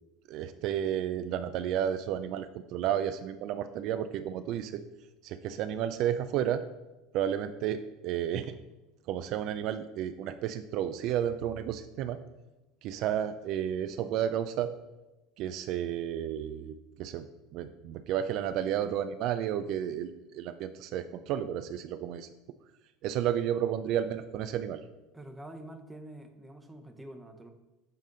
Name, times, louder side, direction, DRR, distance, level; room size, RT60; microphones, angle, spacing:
voice 1, 0.3-4.8 5.2-6.6 7.1-8.5 9.1-12.2 12.8-14.7 15.4-17.3 17.5-22.3 23.0-24.8, right 10 dB, 60° right, 10 dB, 0.3 m, -32 dB
voice 2, 25.1-27.5, right 1 dB, 10° right, 5 dB, 0.8 m, -46 dB
7.5 x 3.5 x 3.8 m, 1.0 s
hypercardioid pair, 90°, 0 cm